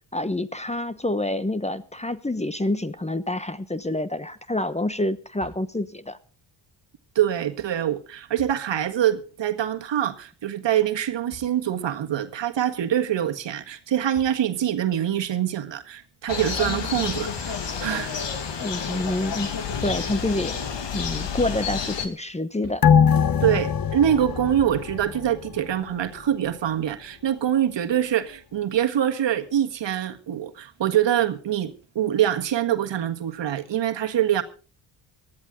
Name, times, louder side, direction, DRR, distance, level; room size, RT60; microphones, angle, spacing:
voice 1, 0.1-6.2 18.6-19.5 19.8-20.6 20.9-22.9, left 1 dB, 15° left, 1.0 m, -27 dB
sound 1, 5.4-6.1 7.6-7.7 8.3-9.1 11.3-12.0 13.8-13.9 14.1-15.0 16.7-16.8 17.0-17.8 19.8-20.7 22.6-23.4, left 2 dB, 85° left, 5.2 m, -50 dB
voice 2, 7.2-17.3 17.8-18.1 23.4-34.4, right 10 dB, 60° right, 1.7 m, -24 dB
sound 2, 16.3-22.1, left 6 dB, 60° left, 2.4 m, -30 dB
sound 3, 22.8-25.7 26.1-26.2, left 7 dB, 45° left, 1.2 m, -21 dB
19.5 x 12.5 x 3.8 m
supercardioid pair, 60°, 49 cm